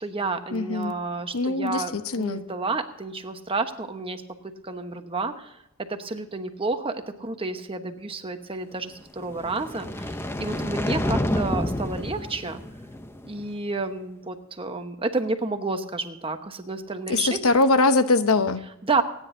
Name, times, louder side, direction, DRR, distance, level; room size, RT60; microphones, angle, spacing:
voice 1, 0.0-4.2 4.6-5.6 5.9-12.6 13.3-17.4 18.8-19.0, right 3 dB, 25° right, 6 dB, 1.1 m, -30 dB
voice 2, 0.5-0.9 1.3-2.4 17.1-18.6, left 3 dB, 80° left, 10 dB, 0.9 m, -22 dB
sound 1, 9.2-13.5, left 1 dB, 10° left, 0.7 m, -29 dB
26.5 x 10.0 x 2.7 m, 0.81 s
head